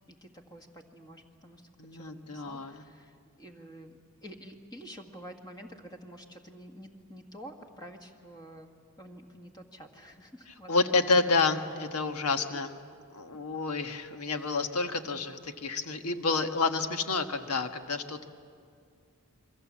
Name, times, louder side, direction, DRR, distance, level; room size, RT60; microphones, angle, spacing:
voice 1, 0.1-8.7 9.0-11.0 13.3-13.4 14.3-14.7, equal, 20° left, 3 dB, 1.8 m, -49 dB
voice 2, 1.8-2.8 10.7-12.8 13.1-18.3, left 3 dB, 80° left, 7 dB, 1.4 m, -29 dB
28.5 x 23.0 x 7.4 m, 2.3 s
head